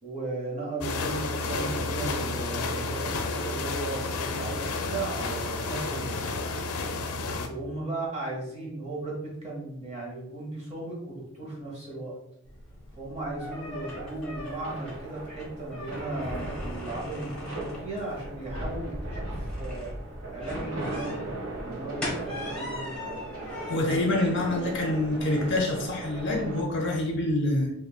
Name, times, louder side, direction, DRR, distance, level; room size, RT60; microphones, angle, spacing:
voice 1, 0.0-6.1 7.5-12.2 12.9-19.9 20.3-21.3 21.6-23.3, right 2 dB, 30° right, -4 dB, 1.3 m, -36 dB
sound 1, 0.8-7.5, left 3 dB, 75° left, 0.5 m, -31 dB
sound 2, 12.4-26.3, left 1 dB, 5° left, 1.1 m, -41 dB
sound 3, 13.4-26.6, right 2 dB, 65° right, 1.0 m, -38 dB
voice 2, 23.7-27.7, left 1 dB, 55° left, 0 dB, 0.8 m, -26 dB
5.4 x 2.7 x 2.2 m, 0.82 s
head